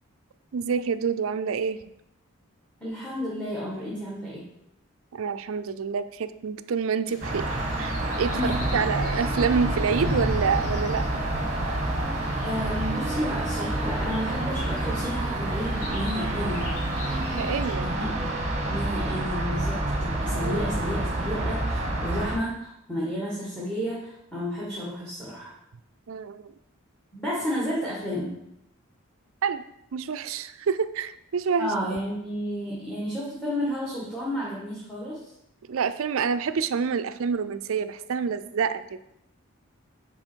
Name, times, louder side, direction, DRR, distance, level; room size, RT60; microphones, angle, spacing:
voice 1, 0.5-1.8 5.1-7.5 7.8-11.0 17.3-17.9 20.4-20.7 26.1-26.4 29.4-29.6 29.9-31.7 35.7-38.8, right 6 dB, 70° right, 12 dB, 0.4 m, -27 dB
voice 2, 2.8-4.4 8.3-8.9 12.4-16.7 17.8-18.3 18.7-25.5 27.1-28.3 31.6-35.3, equal, 5° left, -6 dB, 1.5 m, -31 dB
sound 1, 7.1-17.7, left 1 dB, 85° left, 1.8 m, -39 dB
sound 2, 7.2-22.4, right 1 dB, 30° right, 1.0 m, -28 dB
9.7 x 4.2 x 4.5 m, 0.81 s
head